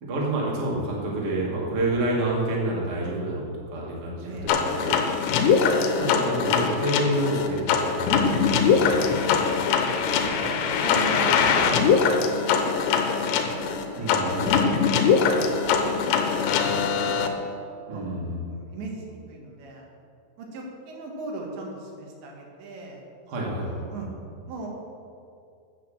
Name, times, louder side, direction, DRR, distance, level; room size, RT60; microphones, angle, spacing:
voice 1, 0.0-5.0 5.9-9.0 14.0-14.5 17.9-18.4 23.3-23.8, right 1 dB, 55° right, -4 dB, 1.1 m, -28 dB
voice 2, 4.2-4.6 5.4-5.7 10.1-13.3 13.6-17.3 17.9-19.9 20.4-23.0 23.6-24.1 24.5-24.7, right 2 dB, 75° right, -1 dB, 3.8 m, -38 dB
sound 1, 4.5-17.3, left 6 dB, 85° left, 3.0 m, -22 dB
9.2 x 6.9 x 7.3 m, 2.5 s
omnidirectional pair, 5.2 m